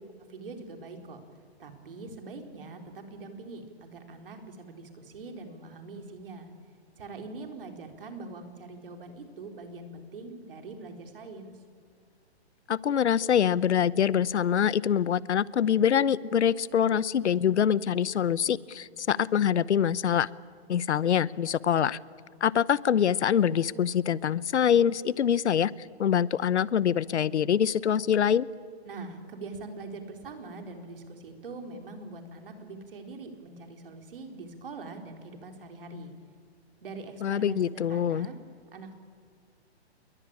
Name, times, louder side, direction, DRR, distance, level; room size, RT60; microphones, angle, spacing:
voice 1, 0.3-1.2 1.6-6.5 7.0-11.6 28.8-36.1 36.8-38.4 38.7-39.0, right 3 dB, 55° right, 5 dB, 4.1 m, -43 dB
voice 2, 12.7-20.3 20.7-22.0 22.4-25.7 26.0-28.5 37.2-38.3, left 8 dB, 85° left, 20 dB, 0.9 m, -24 dB
28.5 x 22.0 x 8.8 m, 2.1 s
hypercardioid pair, 175°, 33 cm